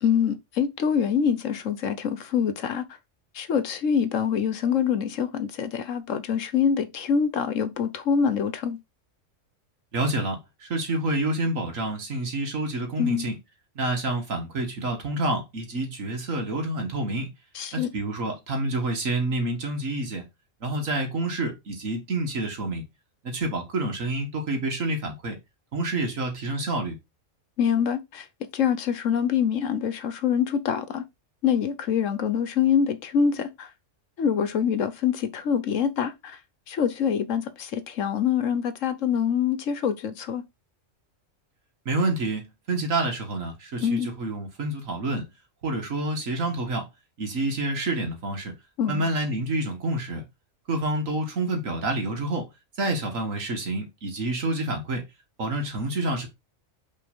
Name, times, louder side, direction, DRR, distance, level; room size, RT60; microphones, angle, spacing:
voice 1, 0.0-2.8 3.3-8.8 13.0-13.3 17.5-17.9 27.6-28.3 28.5-31.0 31.4-33.7 34.2-36.4 36.7-40.4 43.8-44.1 48.8-49.1, left 7 dB, 80° left, 1.3 m, -25 dB
voice 2, 9.9-13.4 13.8-17.3 17.7-20.2 20.6-22.8 23.2-25.4 25.7-27.0 41.9-45.2 45.6-46.9 47.2-48.5 48.8-50.2 50.7-52.5 52.8-55.0 55.4-56.3, right 2 dB, 90° right, 2.1 m, -28 dB
5.6 x 3.9 x 5.3 m
omnidirectional pair, 1.3 m